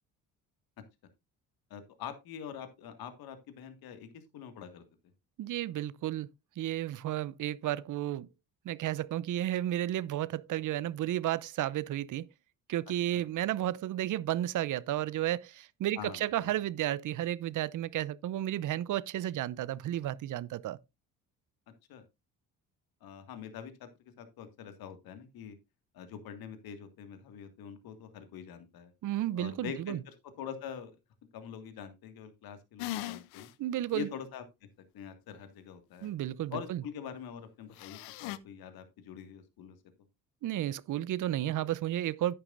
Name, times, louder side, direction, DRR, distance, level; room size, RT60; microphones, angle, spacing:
voice 1, 1.7-4.8 13.1-13.2 16.0-16.5 21.9-22.0 23.0-25.6 25.9-28.9 29.3-30.9 31.3-33.5 33.9-34.4 34.9-36.1 36.5-39.8, left 8 dB, 70° left, 2.0 m, -44 dB
voice 2, 5.4-6.3 6.6-8.3 8.6-12.3 12.7-20.8 29.0-30.0 33.6-34.1 36.0-36.8 40.4-42.4, right 13 dB, 55° right, 0.6 m, -32 dB
sound 1, 32.8-33.5 34.0-34.1 37.8-38.4, left 16 dB, 90° left, 0.7 m, -39 dB
10.0 x 9.8 x 2.5 m
supercardioid pair, 75°, 38 cm